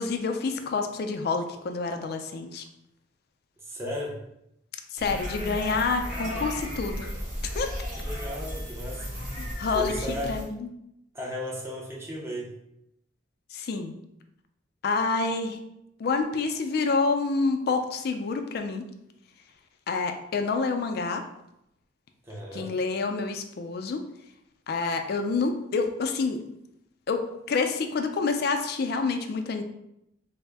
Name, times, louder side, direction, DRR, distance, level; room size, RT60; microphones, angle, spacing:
voice 1, 0.0-2.6 4.9-7.1 7.5-7.7 9.4-9.9 10.3-10.7 13.5-13.9 14.8-15.6 16.0-18.9 19.9-21.2 22.5-24.0 24.7-26.4 27.1-29.6, left 4 dB, 55° left, 6 dB, 0.4 m, -28 dB
voice 2, 3.6-4.1 8.0-9.1 9.7-10.4 11.1-12.5 22.2-22.7, equal, 15° right, -3 dB, 0.6 m, -35 dB
sound 1, 5.0-10.4, equal, 45° right, 1.3 m, -34 dB
3.4 x 2.0 x 3.3 m, 0.82 s
head